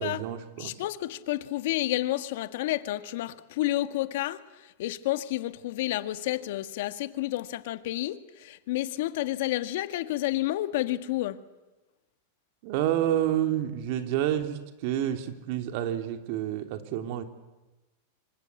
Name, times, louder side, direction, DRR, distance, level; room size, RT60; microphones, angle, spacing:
voice 1, 0.0-0.8 12.6-17.2, right 11 dB, 55° right, 3.1 m, -29 dB
voice 2, 0.6-4.4 4.8-11.4, left 15 dB, 65° left, 1.7 m, -30 dB
25.5 x 25.5 x 8.4 m
hypercardioid pair, 120°, 0 cm